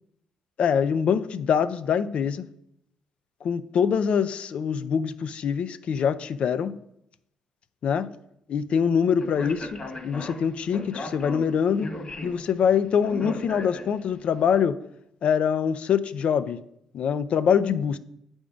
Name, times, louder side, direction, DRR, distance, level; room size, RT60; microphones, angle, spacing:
voice 1, 0.6-2.5 3.4-6.7 7.8-8.1 8.5-11.9 12.2-14.8 15.2-16.6 16.9-18.0, left 7 dB, 60° left, 13 dB, 0.5 m, -24 dB
Speech, 9.2-14.2, left 2 dB, 45° left, 1.7 m, -37 dB
8.5 x 3.5 x 5.1 m, 0.76 s
supercardioid pair, 60°, 2 cm